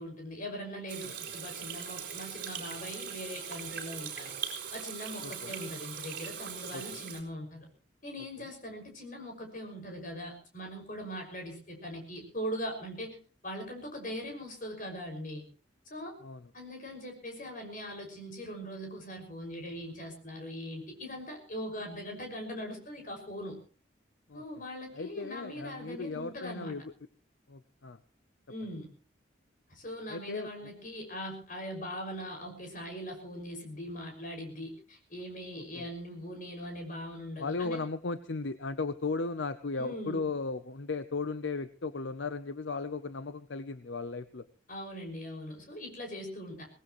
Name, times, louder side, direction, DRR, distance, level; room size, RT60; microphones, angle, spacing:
voice 1, 0.0-4.3 4.7-7.7 8.0-13.2 13.4-15.4 15.9-16.1 16.5-23.6 24.3-26.7 28.5-28.9 29.7-37.9 39.8-40.2 44.7-46.7, equal, 40° left, 3 dB, 6.0 m, -41 dB
Water tap faucet / Sink (filling or washing), 0.9-7.2, right 8 dB, 45° right, 4.9 m, -40 dB
voice 2, 5.2-5.6 6.7-7.1 16.2-16.4 24.3-24.4 24.9-26.9 27.5-28.0 30.1-30.5 35.7-35.8 37.4-44.5, left 3 dB, 65° left, 12 dB, 0.7 m, -36 dB
24.5 x 18.0 x 3.1 m, 0.39 s
head